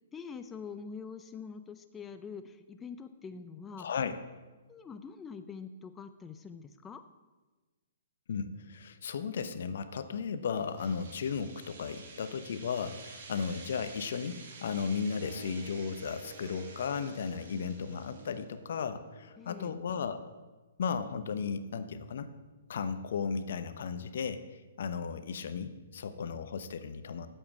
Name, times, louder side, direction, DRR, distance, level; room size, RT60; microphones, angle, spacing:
voice 1, 0.0-3.9 4.7-7.0 19.4-19.8, left 5 dB, 15° left, 10 dB, 0.5 m, -45 dB
voice 2, 3.8-4.2 8.3-20.2 20.8-22.3 22.7-27.3, left 6 dB, 65° left, 11 dB, 0.9 m, -35 dB
sound 1, 10.5-18.4, right 4 dB, 55° right, 2.7 m, -51 dB
sound 2, 12.9-19.4, right 2 dB, 15° right, 3.2 m, -54 dB
8.5 x 7.4 x 8.1 m, 1.2 s
hypercardioid pair, 135°, 0 cm